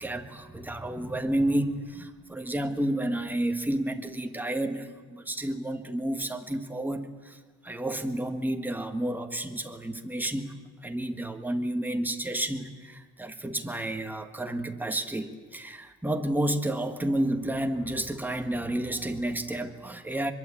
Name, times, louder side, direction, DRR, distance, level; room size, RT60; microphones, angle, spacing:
voice 1, 0.0-10.6 10.8-20.3, right 1 dB, 5° right, 6 dB, 1.7 m, -31 dB
23.5 x 22.5 x 8.6 m, 1.4 s
cardioid pair, 125°, 29 cm